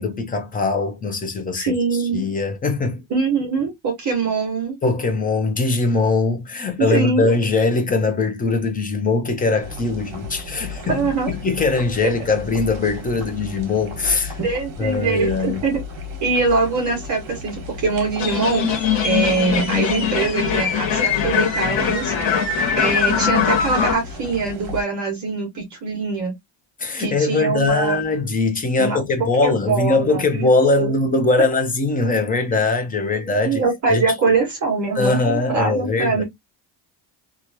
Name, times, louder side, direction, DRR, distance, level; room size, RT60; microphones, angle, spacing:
voice 1, 0.0-3.0 4.8-11.0 11.3-14.4 14.8-15.6 26.8-33.6 33.9-34.4 35.0-36.2, left 3 dB, 20° left, 0.5 m, -21 dB
voice 2, 1.5-2.2 3.1-4.8 6.9-7.3 10.9-11.3 14.4-15.8 16.2-22.1 22.8-26.3 27.0-28.0 28.8-29.0 29.4-30.5 30.8-30.9 33.2-36.2, right 4 dB, 40° right, 1.3 m, -23 dB
sound 1, 9.6-24.8, left 3 dB, 65° right, 1.3 m, -34 dB
sound 2, 18.2-23.9, left 7 dB, 85° left, 1.1 m, -21 dB
2.9 x 2.4 x 2.7 m
cardioid pair, 175°, 44 cm